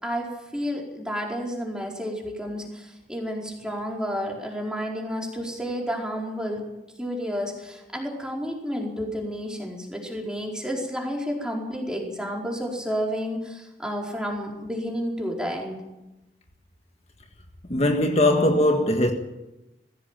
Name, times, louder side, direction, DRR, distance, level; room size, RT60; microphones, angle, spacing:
voice 1, 0.0-6.7 7.0-15.8, equal, 5° right, 4.5 m, -31 dB
voice 2, 17.7-19.1, left 1 dB, 35° left, 1.7 m, -20 dB
20.5 x 16.0 x 9.1 m
head